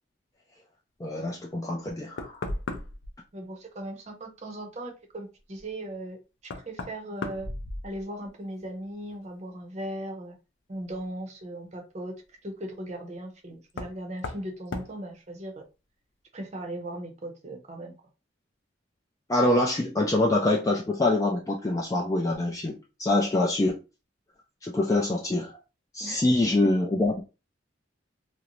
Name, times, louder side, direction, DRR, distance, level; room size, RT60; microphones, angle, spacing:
voice 1, 1.0-2.4 19.3-23.8 24.6-25.6 25.9-27.2, left 2 dB, 20° left, 0.3 m, -25 dB
Knock, 1.7-1.8 2.2-3.1 5.6-5.7 6.4-8.3 8.6-9.2 10.9-11.0 13.7-14.0 14.2-14.5 14.7-14.9, left 2 dB, 80° left, 0.4 m, -36 dB
voice 2, 3.3-6.2 6.4-7.5 7.8-10.4 10.7-12.1 12.4-15.6 16.3-17.9 26.0-26.3, right 1 dB, 35° right, 0.6 m, -38 dB
2.4 x 2.0 x 2.9 m
head